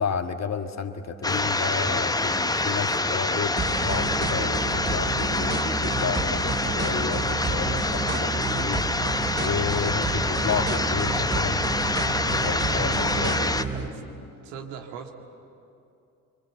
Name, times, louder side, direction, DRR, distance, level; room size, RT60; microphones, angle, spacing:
voice 1, 0.0-8.9 9.4-11.6 12.3-13.5, left 6 dB, 40° left, 7 dB, 1.9 m, -31 dB
sound 1, 1.2-13.6, left 2 dB, 10° left, 1.0 m, -26 dB
sound 2, 3.6-13.9, right 4 dB, 25° right, 3.7 m, -30 dB
voice 2, 12.5-13.3 13.8-13.9 14.4-15.1, right 7 dB, 70° right, 4 dB, 2.2 m, -38 dB
28.5 x 24.5 x 7.9 m, 2.6 s
figure-of-eight pair, 45°, 41 cm